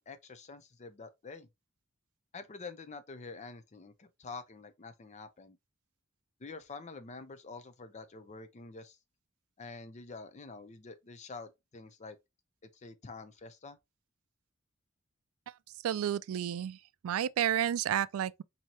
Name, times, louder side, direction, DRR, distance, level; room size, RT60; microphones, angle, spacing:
voice 1, 0.0-1.5 2.3-5.6 6.4-9.0 9.6-12.2 12.7-13.8, left 4 dB, 35° left, 0.5 m, -47 dB
voice 2, 15.8-16.8 17.0-18.4, right 10 dB, 85° right, 0.3 m, -31 dB
4.4 x 2.8 x 2.9 m
head